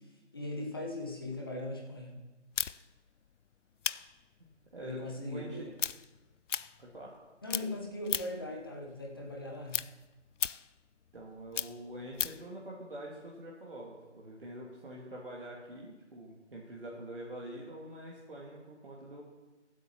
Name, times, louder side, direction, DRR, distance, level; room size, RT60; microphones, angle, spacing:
voice 1, 0.3-2.2 4.8-5.7 7.4-9.8, left 2 dB, 20° left, -1 dB, 1.0 m, -39 dB
sound 1, 2.6-7.2 7.5-8.5 8.9-12.5, left 8 dB, 85° left, 0.5 m, -37 dB
voice 2, 4.7-5.6 6.8-7.1 11.1-19.2, right 1 dB, 50° right, -4 dB, 1.9 m, -45 dB
23.0 x 8.3 x 2.9 m, 1.2 s
figure-of-eight pair, 165°, 36 cm